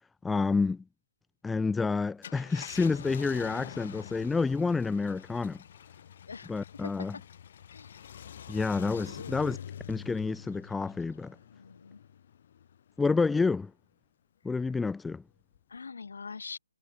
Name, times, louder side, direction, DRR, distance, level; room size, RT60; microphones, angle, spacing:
voice 1, 0.2-0.8 1.4-5.6 6.5-7.2 8.5-9.6 9.9-11.4 13.0-13.7 14.4-15.2, left 4 dB, 5° left, 0.7 m, -29 dB
Car, 2.1-12.9 13.4-13.5 15.5-15.8, left 9 dB, 30° left, 5.0 m, -46 dB
voice 2, 6.8-7.3 7.7-8.0 8.9-9.6 11.5-12.0 15.7-16.6, left 5 dB, 65° left, 4.7 m, -44 dB
hypercardioid pair, 175°, 0 cm